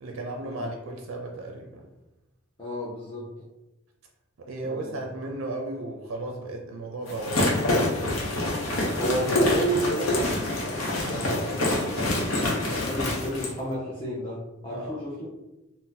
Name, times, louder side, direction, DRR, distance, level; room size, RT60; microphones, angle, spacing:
voice 1, 0.0-1.8 4.4-7.9 14.7-15.1, right 2 dB, 80° right, 1 dB, 0.4 m, -35 dB
voice 2, 2.6-3.3 4.6-5.0 9.0-12.2 12.7-15.3, equal, 25° left, -7 dB, 0.6 m, -32 dB
sound 1, 7.1-13.5, left 1 dB, 80° left, 0.8 m, -26 dB
2.6 x 2.1 x 3.9 m, 0.99 s
head